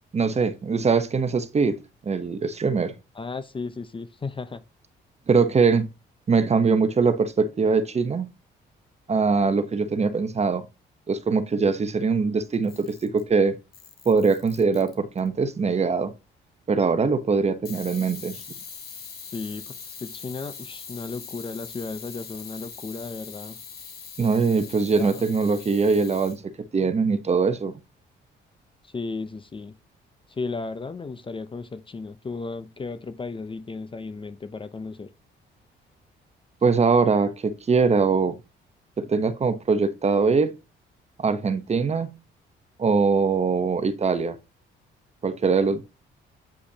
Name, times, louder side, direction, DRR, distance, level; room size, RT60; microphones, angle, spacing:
voice 1, 0.1-2.9 5.3-5.9 6.3-8.3 9.1-10.6 11.1-13.6 14.1-16.1 16.7-18.4 24.2-26.4 26.7-27.7 36.6-38.4 39.0-40.5 41.2-42.1 42.8-44.4 45.2-45.8, right 4 dB, 35° right, 0.9 m, -22 dB
voice 2, 3.1-4.6 19.3-23.6 25.0-25.3 28.8-29.8 30.3-35.1, left 4 dB, 25° left, 0.7 m, -35 dB
Camera, 12.5-13.3 13.7-15.3 17.7-26.4, left 6 dB, 50° left, 1.9 m, -42 dB
8.5 x 5.0 x 2.8 m
cardioid pair, 90°, 20 cm